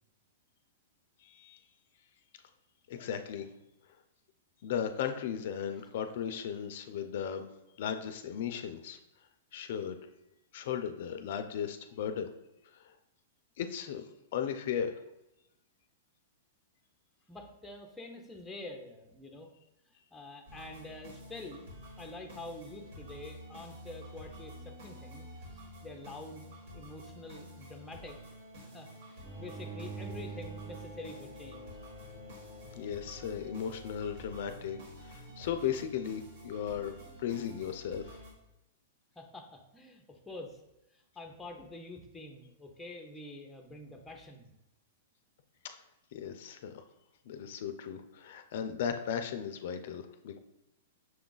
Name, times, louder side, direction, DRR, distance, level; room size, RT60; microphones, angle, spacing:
voice 1, 1.2-1.6 2.9-3.5 4.6-7.5 7.8-9.0 9.5-10.0 10.5-12.3 13.6-14.0 14.3-14.9 32.8-38.2 45.6-45.8 46.1-46.8 47.3-50.4, left 8 dB, 60° left, 8 dB, 0.4 m, -36 dB
voice 2, 17.3-19.5 19.8-21.7 22.0-28.2 28.5-31.8 39.2-40.6 40.9-44.5, left 2 dB, 5° left, 3 dB, 0.5 m, -47 dB
sound 1, 20.5-38.3, equal, 65° right, 1.5 m, -50 dB
Bowed string instrument, 29.2-34.4, right 4 dB, 85° right, 1.6 m, -46 dB
5.9 x 2.3 x 3.8 m, 0.90 s
hypercardioid pair, 150°, 0 cm